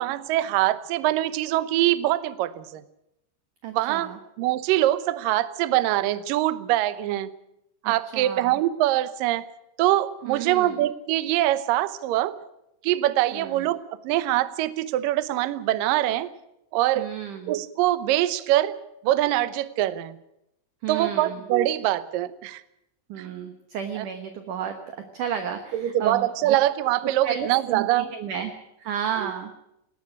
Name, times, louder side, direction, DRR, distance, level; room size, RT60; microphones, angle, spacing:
voice 1, 0.0-2.8 3.7-7.3 7.9-9.5 9.8-12.4 12.8-16.3 16.7-17.1 17.5-18.8 19.0-20.2 20.9-22.6 23.2-23.3 24.0-24.1 25.7-28.1 29.2-29.3, right 14 dB, 90° right, 13 dB, 1.9 m, -24 dB
voice 2, 3.6-4.2 7.8-8.6 10.2-10.8 13.3-13.7 17.0-17.6 20.8-21.4 23.1-26.6 27.2-28.5 28.8-29.5, right 8 dB, 65° right, 6 dB, 2.1 m, -32 dB
19.5 x 14.5 x 9.8 m, 0.83 s
omnidirectional pair, 5.3 m